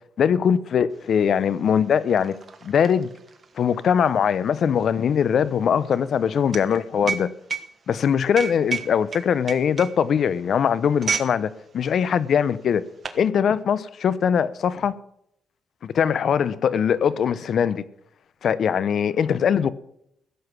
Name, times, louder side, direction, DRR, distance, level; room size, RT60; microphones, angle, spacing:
voice 1, 0.2-2.3 2.6-3.1 3.6-7.3 7.9-12.8 13.1-14.9 15.8-17.8 18.4-19.7, left 7 dB, 60° left, 0.8 m, -21 dB
sound 1, 1.1-1.2 1.4-11.4 11.7-11.9 12.6-13.3, right 5 dB, 40° right, 1.4 m, -32 dB
15.5 x 8.0 x 6.1 m
cardioid pair, 90°, 0 cm